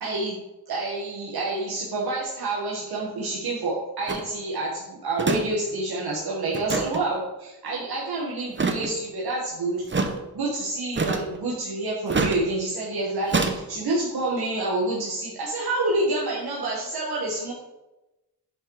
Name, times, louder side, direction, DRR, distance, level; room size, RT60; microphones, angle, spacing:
voice 1, 0.0-0.4 0.7-9.8 10.3-17.5, right 2 dB, 75° right, -6 dB, 1.9 m, -28 dB
sound 1, 4.1-4.3 5.2-5.4 5.7-5.8 6.5-7.0 8.5-8.9 9.9-10.1 10.9-11.4 12.1-12.4 13.3-13.6, right 4 dB, 30° right, 1.0 m, -25 dB
9.6 x 5.4 x 4.9 m, 1.0 s
wide cardioid pair, 120°, 38 cm